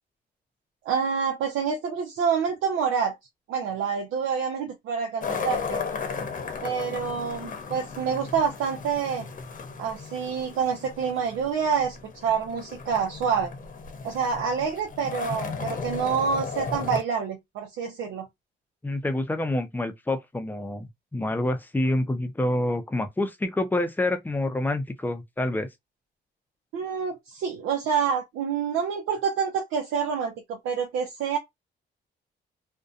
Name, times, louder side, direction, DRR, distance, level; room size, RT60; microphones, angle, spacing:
voice 1, 0.9-3.2 3.5-5.8 6.6-9.2 9.8-13.5 14.0-18.3 26.7-31.4, right 6 dB, 85° right, 0.6 m, -27 dB
sound 1, 5.2-17.0, left 5 dB, 45° left, 0.8 m, -35 dB
voice 2, 18.8-25.7, left 1 dB, 10° left, 0.5 m, -27 dB
2.6 x 2.2 x 2.4 m
cardioid pair, 90°, 20 cm